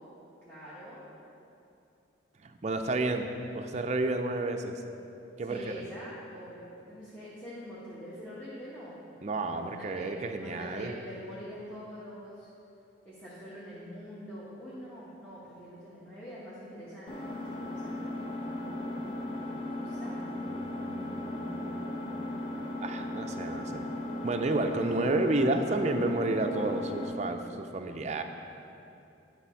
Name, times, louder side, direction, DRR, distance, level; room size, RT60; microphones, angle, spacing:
voice 1, 0.4-1.0 5.4-9.0 9.5-10.1 10.3-12.5 13.0-18.3 19.5-20.2, equal, 10° left, -11 dB, 1.3 m, -45 dB
voice 2, 2.4-3.3 3.5-4.8 5.4-5.6 9.2-10.9 20.5-22.3 22.8-23.8 24.2-28.2, right 2 dB, 35° right, 5 dB, 0.4 m, -31 dB
Engine, 17.1-27.1, left 1 dB, 25° left, 1.0 m, -36 dB
10.5 x 4.1 x 5.6 m, 2.7 s
head